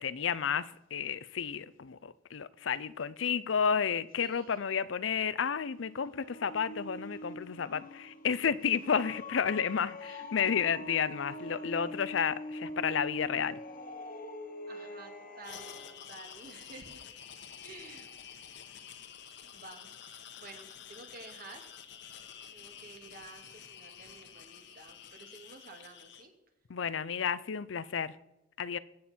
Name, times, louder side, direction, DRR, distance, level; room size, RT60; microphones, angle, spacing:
voice 1, 0.0-13.6 26.7-28.1 28.6-28.8, left 7 dB, 90° left, 0.6 m, -31 dB
voice 2, 4.2-4.6 8.8-9.2 10.0-10.3 11.0-11.7 14.7-17.0 17.6-18.1 19.4-19.9 20.4-21.7 22.5-26.3, right 3 dB, 50° right, 2.2 m, -52 dB
sound 1, 5.6-16.1, left 1 dB, 50° left, 1.4 m, -44 dB
sound 2, 15.4-26.2, left 8 dB, 65° left, 1.1 m, -49 dB
21.5 x 8.6 x 4.4 m
head